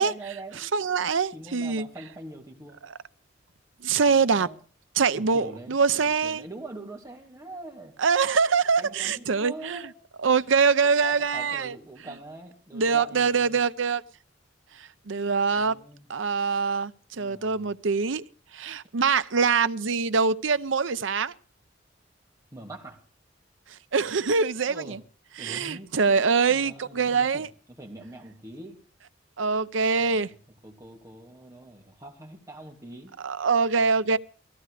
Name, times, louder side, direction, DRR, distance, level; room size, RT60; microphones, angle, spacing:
voice 1, 0.0-0.7 1.3-2.8 4.0-4.6 5.1-8.0 8.8-9.9 10.8-13.6 15.5-16.1 17.2-17.7 22.5-23.0 24.7-25.0 25.4-28.8 29.8-30.4 30.6-33.1 34.0-34.2, right 2 dB, 15° right, 2.8 m, -43 dB
voice 2, 0.7-1.9 3.8-4.5 5.0-6.4 8.0-9.8 10.2-11.7 12.7-14.0 15.1-15.7 16.1-18.2 18.5-21.3 23.9-25.0 25.4-27.5 29.4-30.3 33.2-34.2, right 5 dB, 90° right, 0.7 m, -24 dB
18.0 x 15.0 x 5.0 m
head